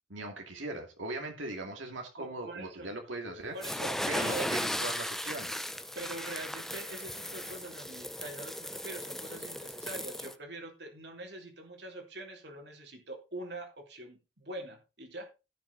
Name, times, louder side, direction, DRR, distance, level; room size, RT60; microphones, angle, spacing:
voice 1, 0.1-3.6 4.1-5.5, right 2 dB, 80° right, 2 dB, 2.5 m, -39 dB
voice 2, 2.2-2.9 3.5-4.5 5.9-15.3, right 2 dB, 60° right, 3 dB, 2.9 m, -43 dB
sound 1, 3.6-10.3, left 1 dB, ahead, 0.6 m, -36 dB
16.5 x 6.2 x 4.1 m, 0.29 s
head